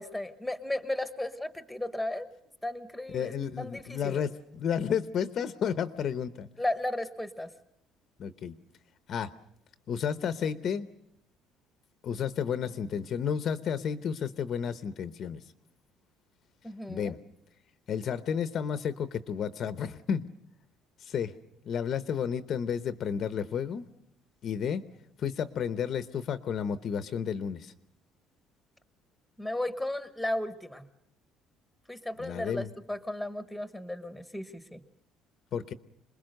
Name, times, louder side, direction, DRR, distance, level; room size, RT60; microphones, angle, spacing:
voice 1, 0.0-2.3 2.6-4.2 6.6-7.5 16.6-17.2 29.4-30.9 31.9-34.8, left 1 dB, ahead, 11 dB, 1.1 m, -35 dB
voice 2, 3.1-6.5 8.2-8.6 9.1-9.3 9.9-10.9 12.0-15.4 16.9-17.2 17.9-20.2 21.0-21.3 21.6-23.9 24.4-24.8 25.2-27.7 32.2-32.7 35.5-35.7, left 7 dB, 35° left, 12 dB, 0.8 m, -32 dB
27.0 x 21.0 x 6.6 m, 0.77 s
cardioid pair, 180°, 0 cm